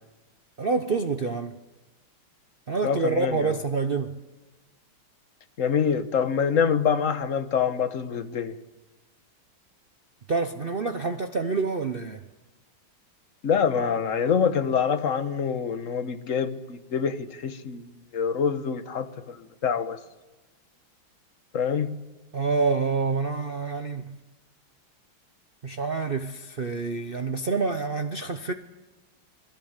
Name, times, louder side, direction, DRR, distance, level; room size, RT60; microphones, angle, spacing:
voice 1, 0.6-1.5 2.7-4.2 10.3-12.3 22.3-24.2 25.6-28.5, right 4 dB, 90° right, 0.4 m, -27 dB
voice 2, 2.8-3.5 5.6-8.5 13.4-20.0 21.5-21.9, left 7 dB, 45° left, 1.3 m, -26 dB
26.5 x 18.5 x 8.2 m
omnidirectional pair, 2.3 m